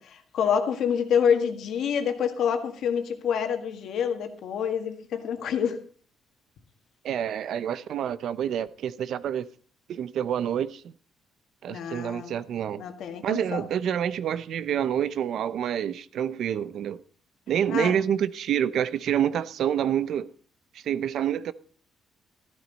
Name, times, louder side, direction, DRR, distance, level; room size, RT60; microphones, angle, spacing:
voice 1, 0.0-5.8 11.7-12.4 12.8-13.7 17.7-17.9, left 7 dB, 65° left, 1.8 m, -27 dB
voice 2, 7.0-9.4 9.9-10.9 11.6-12.8 13.2-17.0 17.5-20.3 20.7-21.5, right 9 dB, 65° right, 0.6 m, -27 dB
13.5 x 12.5 x 4.1 m
cardioid pair, 135°, 0 cm